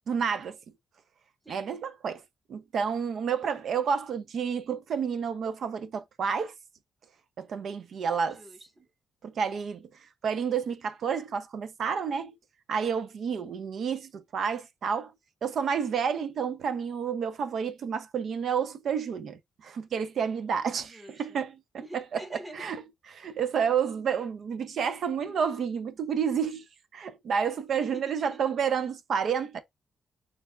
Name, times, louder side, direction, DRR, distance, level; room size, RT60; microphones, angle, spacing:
voice 1, 0.1-0.6 1.5-2.2 2.5-6.5 7.4-8.4 9.2-9.9 10.2-12.4 12.7-15.1 15.4-21.6 22.5-22.8 23.1-26.6 26.9-29.6, right 7 dB, 60° right, 0.4 m, -30 dB
voice 2, 1.4-1.8 8.2-8.9 20.8-21.4 21.8-22.8 27.7-28.4, right 1 dB, 15° right, 1.1 m, -46 dB
3.3 x 3.3 x 2.2 m
cardioid pair, 125°, 0 cm